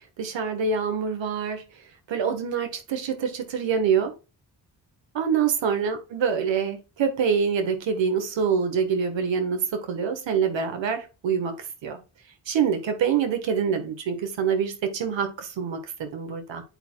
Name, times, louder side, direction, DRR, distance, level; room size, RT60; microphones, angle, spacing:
voice 1, 0.2-1.6 2.1-4.1 5.1-11.6 11.8-12.0 12.5-16.6, right 6 dB, 90° right, 1.6 m, -25 dB
9.8 x 4.6 x 2.3 m
cardioid pair, 65°, 44 cm